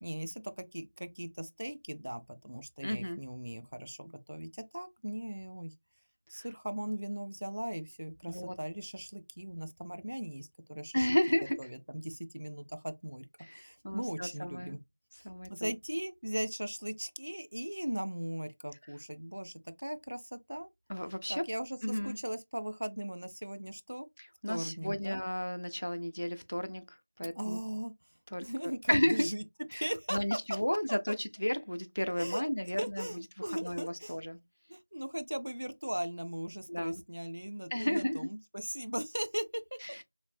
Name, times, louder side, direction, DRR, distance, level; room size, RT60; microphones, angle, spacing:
voice 1, 0.0-5.7 6.3-11.1 11.6-13.2 13.5-14.8 15.2-20.7 21.3-24.1 24.5-25.2 27.4-27.9 28.4-29.4 29.7-30.2 32.2-32.4 32.8-34.2 34.7-39.8, right 1 dB, 40° right, 0.4 m, -39 dB
voice 2, 2.8-3.2 6.3-6.5 8.2-8.5 10.9-11.6 13.4-14.8 15.2-15.8 20.9-21.4 21.8-22.2 24.2-27.6 28.3-29.3 29.7-34.4 36.7-37.0 37.7-38.3 39.8-40.0, equal, 60° left, 0.5 m, -33 dB
3.2 x 2.7 x 2.5 m
figure-of-eight pair, 180°, 0 cm